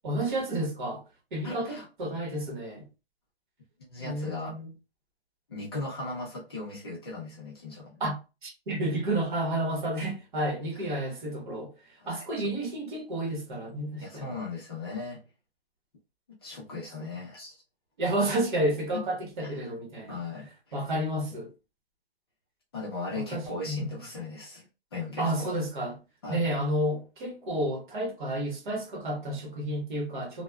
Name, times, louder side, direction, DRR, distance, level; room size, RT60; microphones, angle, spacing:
voice 1, 0.0-1.0 1.3-2.9 4.0-4.7 8.0-8.2 8.4-11.7 12.1-14.4 17.0-17.1 18.0-20.2 20.7-21.5 23.1-24.0 25.2-26.0 26.3-30.4, right 1 dB, 50° right, 1.2 m, -31 dB
voice 2, 1.4-1.9 3.9-4.6 5.5-7.9 12.0-12.5 14.0-15.2 16.4-17.5 19.4-19.5 20.1-20.8 22.7-24.7 24.9-25.5 26.2-26.4, left 3 dB, 25° left, 0.6 m, -37 dB
3.1 x 2.2 x 2.2 m
hypercardioid pair, 165°, 31 cm